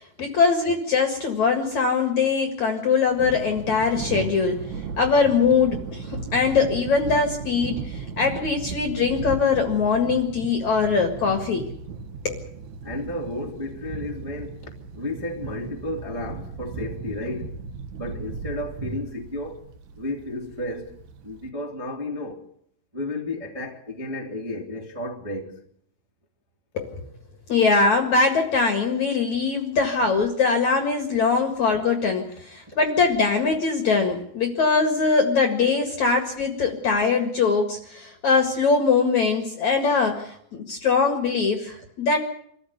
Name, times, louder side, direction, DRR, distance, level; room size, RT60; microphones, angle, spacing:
voice 1, 0.2-4.6 5.0-11.7 12.2-12.4 26.7-27.0 27.5-42.2, left 4 dB, 50° left, 2.4 m, -22 dB
Thunder, 3.1-21.5, right 5 dB, 75° right, 1.7 m, -36 dB
voice 2, 12.8-17.6 18.0-19.6 19.9-22.5 22.9-25.6 32.7-32.8, left 1 dB, 10° right, 1.7 m, -33 dB
25.5 x 15.0 x 8.2 m
omnidirectional pair, 5.5 m